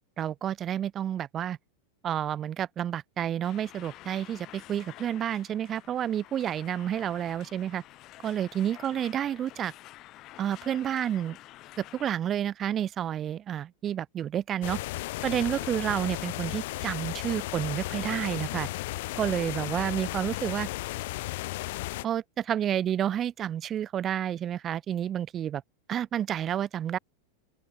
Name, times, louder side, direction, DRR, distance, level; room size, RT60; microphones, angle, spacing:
voice 1, 0.2-1.6 2.0-7.8 8.2-9.7 10.4-11.4 11.8-14.8 15.2-18.7 19.2-20.7 22.0-25.6 25.9-27.0, right 10 dB, 25° right, 0.5 m, -30 dB
sound 1, 3.4-12.1, left 16 dB, 40° left, 4.8 m, -50 dB
sound 2, 14.6-22.0, left 19 dB, 60° left, 2.0 m, -34 dB
open air
supercardioid pair, 140°, 0 cm